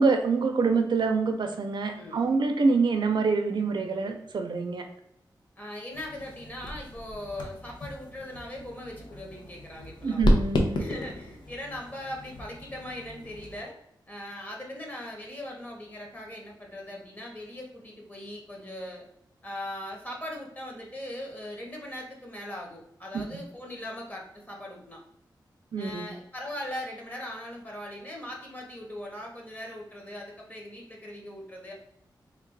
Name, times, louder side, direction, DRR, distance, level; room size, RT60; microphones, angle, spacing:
voice 1, 0.0-4.8 10.0-10.8 23.1-23.2 25.7-26.1, right 4 dB, 75° right, 5 dB, 0.5 m, -26 dB
voice 2, 5.6-10.2 10.8-13.8 14.1-19.0 19.4-25.0 25.8-31.7, left 1 dB, 20° left, -1 dB, 1.1 m, -40 dB
ball drop, 5.9-13.6, left 1 dB, 75° left, 0.7 m, -32 dB
3.4 x 2.4 x 4.5 m, 0.75 s
wide cardioid pair, 120°, 8 cm